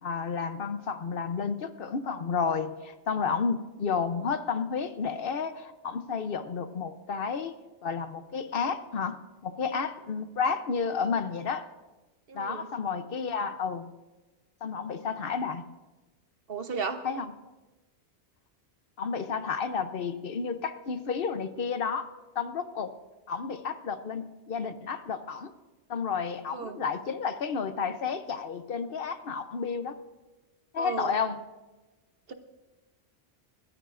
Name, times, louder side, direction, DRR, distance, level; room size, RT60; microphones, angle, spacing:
voice 1, 0.0-7.5 7.8-11.7 12.3-13.9 14.6-15.6 17.0-17.3 19.0-22.9 23.3-25.5 25.9-30.0 30.7-31.4, left 5 dB, 55° left, 10 dB, 0.9 m, -31 dB
voice 2, 12.3-12.7 16.5-17.0 26.5-26.8 30.8-31.1 32.3-32.4, right 5 dB, 55° right, 8 dB, 1.1 m, -34 dB
30.0 x 14.0 x 2.5 m, 1.2 s
omnidirectional pair, 1.2 m